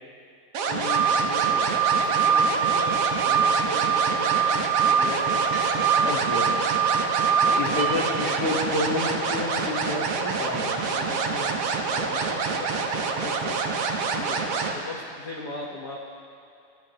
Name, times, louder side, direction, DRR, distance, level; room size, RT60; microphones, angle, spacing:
sound 1, 0.5-14.7, right 4 dB, 65° right, 1.7 m, -27 dB
voice 1, 0.7-5.4 5.7-6.1 6.4-6.7 7.4-8.2 9.6-9.7 10.9-11.5 11.9-13.8 14.1-14.5 14.7-16.0, left 3 dB, 70° left, -2 dB, 0.9 m, -38 dB
sound 2, 0.9-8.0, right 7 dB, 80° right, 2.1 m, -24 dB
sound 3, 4.3-4.6 5.3-5.8 6.1-8.7, right 1 dB, 15° right, 2.5 m, -41 dB
voice 2, 6.0-6.6 7.3-10.8, left 2 dB, 50° left, -4 dB, 1.1 m, -30 dB
24.0 x 13.5 x 2.9 m, 2.5 s
omnidirectional pair, 3.7 m